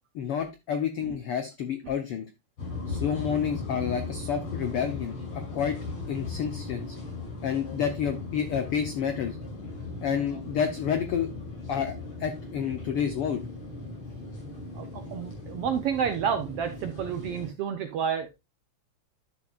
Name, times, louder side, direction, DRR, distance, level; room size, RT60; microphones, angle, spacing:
voice 1, 0.1-2.3 2.9-5.8 6.1-7.0 7.4-9.4 10.0-11.3 11.7-11.9 12.2-13.4, left 8 dB, 80° left, 7 dB, 1.2 m, -29 dB
sound 1, 2.6-17.5, left 3 dB, 45° left, 6.2 m, -38 dB
voice 2, 14.7-18.4, right 8 dB, 90° right, 7 dB, 1.3 m, -30 dB
11.0 x 7.1 x 2.4 m, 0.23 s
omnidirectional pair, 3.7 m